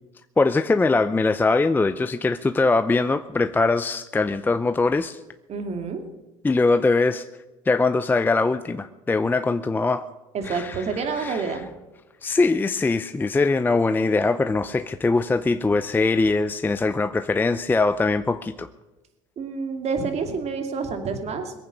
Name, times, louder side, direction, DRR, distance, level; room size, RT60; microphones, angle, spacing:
voice 1, 0.4-5.2 6.4-7.3 7.7-10.1 10.4-11.6 12.2-18.7, left 3 dB, 10° left, 10 dB, 0.5 m, -22 dB
voice 2, 5.5-6.0 10.3-11.6 19.4-21.5, right 5 dB, 40° right, 6 dB, 2.7 m, -28 dB
22.0 x 9.0 x 6.6 m, 1.1 s
supercardioid pair, 100°, 17 cm